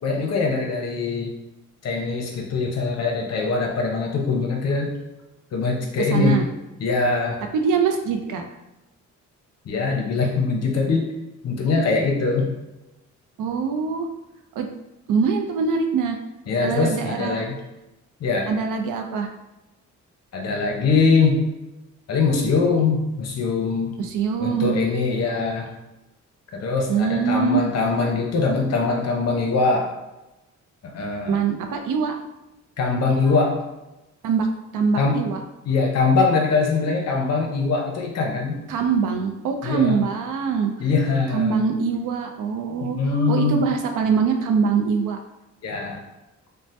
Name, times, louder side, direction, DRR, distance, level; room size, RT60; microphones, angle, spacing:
voice 1, 0.0-1.3 1.8-5.0 5.5-6.4 6.8-7.4 9.6-11.1 11.4-12.5 16.5-17.6 18.2-18.5 20.3-21.4 22.1-23.9 24.4-25.7 26.5-29.9 30.8-31.4 32.8-33.6 34.9-35.3 35.6-38.6 39.6-40.0 40.8-41.6 42.8-43.7 45.6-46.0, left 4 dB, 55° left, 1 dB, 0.6 m, -22 dB
voice 2, 6.1-6.4 7.5-8.4 13.4-14.1 14.6-14.7 15.1-16.2 16.6-17.5 18.5-19.3 24.0-24.8 26.9-27.6 31.3-32.2 34.2-34.5 34.7-35.4 38.7-40.7 41.3-43.0 43.3-45.2, right 6 dB, 80° right, 4 dB, 0.5 m, -23 dB
2.7 x 2.1 x 3.1 m, 0.98 s
wide cardioid pair, 145°, 30 cm